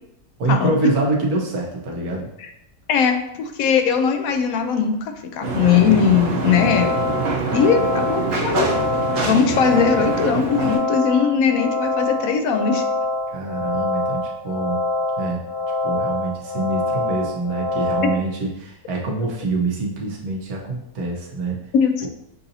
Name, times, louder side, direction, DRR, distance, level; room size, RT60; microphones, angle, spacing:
voice 1, 0.4-2.3 13.3-14.8 15.2-15.4 15.8-21.6, right 3 dB, 80° right, -1 dB, 1.4 m, -25 dB
voice 2, 2.9-6.9 7.5-8.7 9.2-12.8 18.0-18.1 21.7-22.1, left 7 dB, 75° left, 6 dB, 1.0 m, -19 dB
sound 1, 5.4-10.8, right 3 dB, 45° right, 0.8 m, -25 dB
sound 2, 6.4-18.2, left 2 dB, 35° left, 0.6 m, -25 dB
6.8 x 2.6 x 2.7 m, 0.79 s
omnidirectional pair, 1.6 m